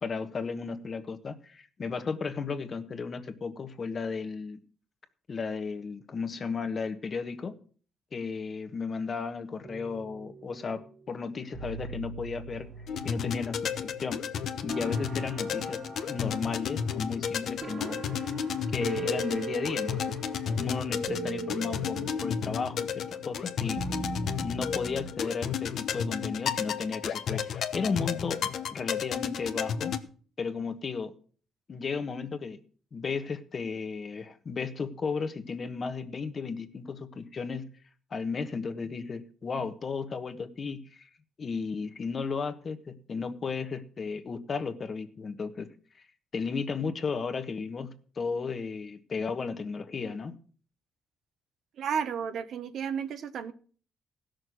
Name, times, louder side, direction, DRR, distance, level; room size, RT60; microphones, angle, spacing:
voice 1, 0.0-4.6 5.3-7.5 8.1-12.7 13.0-14.2 14.6-18.3 18.7-20.2 20.5-23.8 24.4-29.9 30.4-31.1 31.7-32.6 32.9-37.7 38.1-41.1 41.4-45.7 46.3-50.3, left 5 dB, 40° left, 9 dB, 1.3 m, -34 dB
sound 1, 9.6-10.8 11.5-14.1 14.7-25.1, right 4 dB, 50° right, 1.3 m, -41 dB
sound 2, 12.9-30.0, left 7 dB, 65° left, 1.0 m, -33 dB
voice 2, 51.8-53.5, right 7 dB, 70° right, 11 dB, 1.0 m, -32 dB
16.0 x 6.5 x 6.3 m, 0.44 s
cardioid pair, 90°, 0 cm